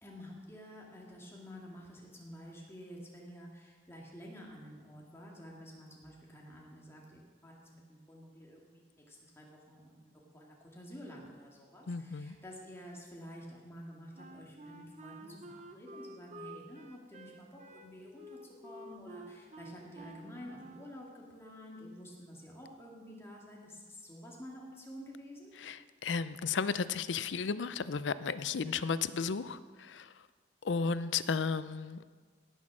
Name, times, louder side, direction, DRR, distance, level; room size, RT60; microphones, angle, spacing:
voice 1, 0.0-25.5, equal, 15° left, -2 dB, 2.2 m, -50 dB
voice 2, 11.9-12.3 25.6-30.1 30.6-32.0, left 5 dB, 90° left, 15 dB, 0.5 m, -34 dB
Wind instrument woodwind instrument, 14.2-21.0, right 1 dB, 40° right, 0.9 m, -50 dB
17.5 x 6.4 x 6.2 m, 1.5 s
head